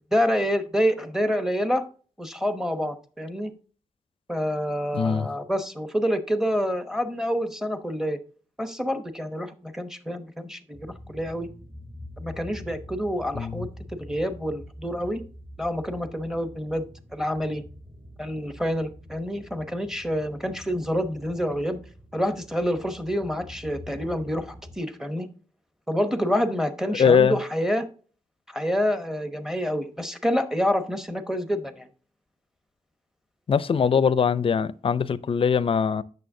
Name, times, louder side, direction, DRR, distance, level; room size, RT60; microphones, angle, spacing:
voice 1, 0.0-1.9 2.2-3.5 4.3-8.2 8.6-11.5 12.2-15.2 15.6-16.9 17.1-17.6 18.2-21.8 22.1-25.3 25.9-27.9 28.5-31.9, equal, 5° right, 0.9 m, -27 dB
voice 2, 4.9-5.3 13.3-13.7 26.9-27.4 33.5-36.0, left 6 dB, 45° left, 0.4 m, -22 dB
sound 1, 10.7-24.8, left 1 dB, 40° right, 3.9 m, -45 dB
8.4 x 6.6 x 2.7 m
cardioid pair, 95°, 13 cm